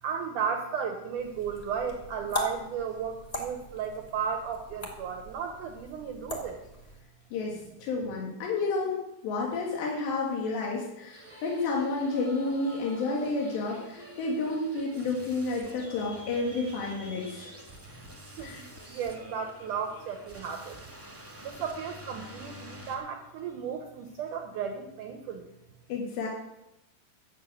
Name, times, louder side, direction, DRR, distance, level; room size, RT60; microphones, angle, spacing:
voice 1, 0.0-6.6 18.4-20.8 21.4-25.5, right 6 dB, 70° right, 4 dB, 2.0 m, -34 dB
sound 1, 1.2-7.0, left 1 dB, 50° left, 0.4 m, -39 dB
voice 2, 7.3-9.0 9.2-17.6 18.4-18.7 25.9-26.3, left 3 dB, 85° left, -2 dB, 4.1 m, -31 dB
sound 2, 11.1-23.0, equal, 10° right, 0.8 m, -47 dB
11.5 x 7.2 x 8.4 m, 0.91 s
omnidirectional pair, 4.8 m